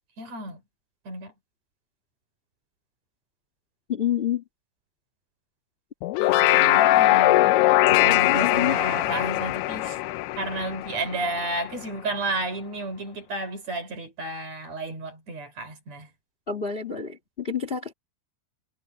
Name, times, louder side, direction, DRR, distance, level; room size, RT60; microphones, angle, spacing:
voice 1, 0.2-0.6 1.1-1.3 6.2-10.0 10.4-16.1, right 2 dB, 40° right, 5.4 m, -32 dB
voice 2, 3.9-4.4 8.1-8.8 16.5-17.9, left 8 dB, 50° left, 0.7 m, -28 dB
sound 1, 6.0-11.5, left 16 dB, 80° left, 2.7 m, -21 dB
omnidirectional pair, 4.9 m